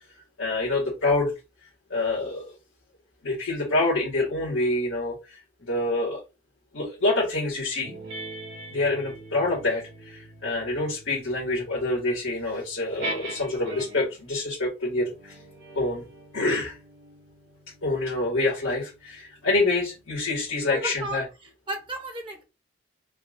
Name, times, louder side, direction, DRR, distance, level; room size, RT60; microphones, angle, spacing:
voice 1, 0.4-1.3 1.9-2.5 3.2-6.2 6.7-8.1 8.7-15.4 15.7-16.0 16.3-16.8 17.8-21.3, left 2 dB, 90° left, 2.0 m, -26 dB
sound 1, 7.8-14.2 15.0-19.9, right 2 dB, 55° right, 1.6 m, -42 dB
voice 2, 20.7-22.4, right 2 dB, 25° right, 0.8 m, -35 dB
5.5 x 2.5 x 2.6 m
head